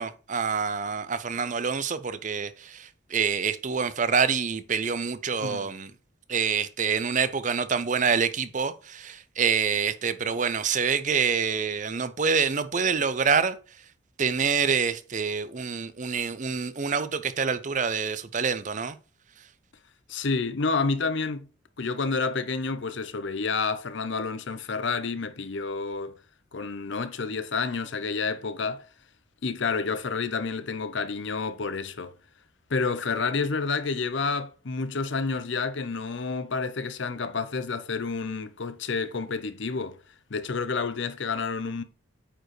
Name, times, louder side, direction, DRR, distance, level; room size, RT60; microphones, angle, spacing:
voice 1, 0.0-5.9 6.3-13.6 14.2-19.0, right 6 dB, 35° right, 0.5 m, -26 dB
voice 2, 20.1-21.5 21.8-26.1 26.5-28.9 29.4-32.2 32.7-40.0 40.3-41.8, left 4 dB, 60° left, 0.7 m, -29 dB
8.9 x 4.6 x 3.2 m
head